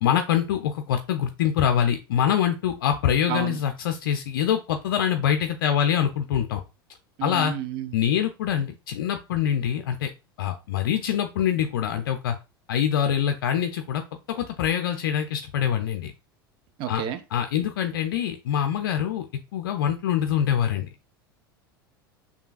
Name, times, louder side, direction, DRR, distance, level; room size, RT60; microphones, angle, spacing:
voice 1, 0.0-6.6 7.2-7.5 7.9-10.1 10.4-12.4 12.7-14.0 14.3-16.1 16.9-17.0 17.3-19.2 19.5-20.9, left 9 dB, 65° left, 7 dB, 0.4 m, -24 dB
voice 2, 7.2-7.9 16.8-17.2, right 9 dB, 45° right, 10 dB, 0.5 m, -30 dB
6.5 x 2.8 x 2.4 m, 0.28 s
figure-of-eight pair, 80°, 12 cm